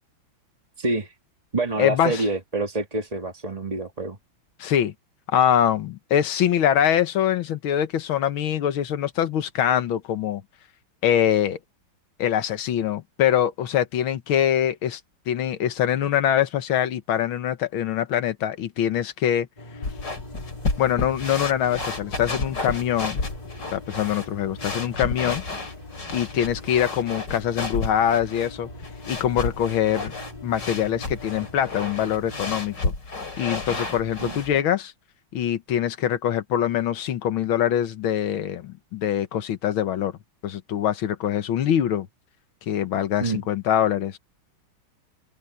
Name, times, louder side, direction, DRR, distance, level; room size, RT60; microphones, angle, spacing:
voice 1, 0.8-1.1 1.5-4.2 34.2-34.4 43.2-43.4, right 2 dB, 20° right, 1.5 m, -27 dB
voice 2, 1.8-2.2 4.6-4.9 5.3-10.4 11.0-11.6 12.2-15.0 15.3-19.5 20.8-23.2 23.7-25.4 26.1-28.7 29.1-30.1 30.4-32.9 33.4-34.9 35.3-40.1 40.4-42.1 42.7-44.2, left 10 dB, 80° left, 1.9 m, -23 dB
sound 1, 19.6-32.8, left 2 dB, 20° left, 3.1 m, -43 dB
sound 2, 19.8-34.6, left 3 dB, 55° left, 4.8 m, -32 dB
open air
omnidirectional pair, 2.2 m